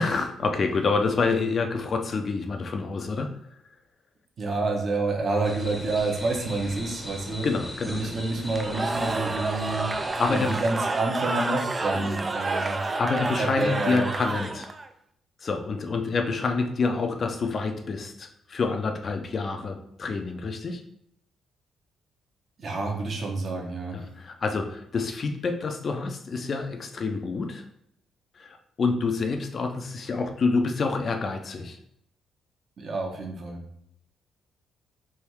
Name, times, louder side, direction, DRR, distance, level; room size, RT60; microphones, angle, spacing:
voice 1, 0.0-3.3 7.4-8.1 10.2-10.5 11.9-12.1 13.0-14.7 15.4-20.8 23.9-27.6 28.4-31.8, left 4 dB, 45° left, 6 dB, 0.5 m, -27 dB
voice 2, 4.4-7.5 7.8-9.9 10.3-12.8 13.4-14.1 22.6-24.0 32.8-33.6, right 3 dB, 50° right, 1 dB, 1.0 m, -28 dB
sound 1, 5.4-10.6, left 1 dB, 10° left, 0.8 m, -39 dB
Cheering / Crowd, 8.5-14.9, right 3 dB, 25° right, 0.4 m, -29 dB
3.5 x 2.7 x 4.6 m, 0.74 s
cardioid pair, 90°, 0 cm